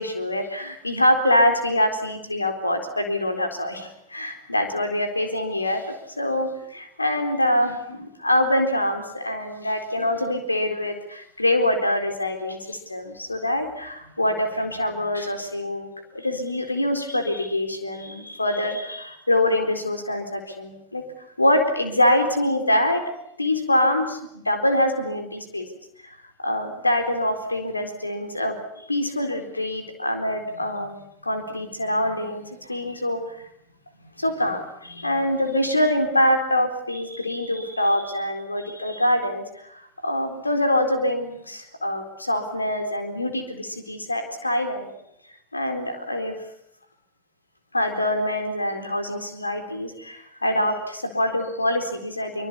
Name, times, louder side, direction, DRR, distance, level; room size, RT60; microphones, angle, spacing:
voice 1, 0.0-5.9 6.2-15.9 16.1-21.0 21.4-23.0 23.4-25.7 26.4-33.4 34.2-44.9 45.5-46.4 47.7-52.5, left 1 dB, 85° left, 6 dB, 4.1 m, -24 dB
26.0 x 24.5 x 8.5 m, 0.76 s
figure-of-eight pair, 85°, 0 cm